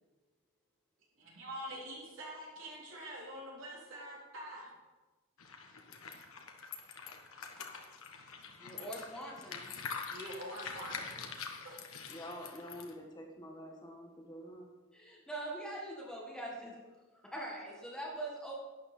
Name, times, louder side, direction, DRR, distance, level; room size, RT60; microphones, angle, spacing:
voice 1, 1.2-4.7 10.1-11.3 11.6-11.7, right 1 dB, 65° right, -5 dB, 3.7 m, -45 dB
sound 1, 5.4-12.9, left 5 dB, 80° left, 1.3 m, -45 dB
voice 2, 8.6-9.8 14.9-16.8 17.1-18.6, right 1 dB, 5° left, -3 dB, 1.7 m, -43 dB
voice 3, 12.1-14.7, equal, 20° left, 0 dB, 1.5 m, -47 dB
12.0 x 9.1 x 4.4 m, 1.3 s
head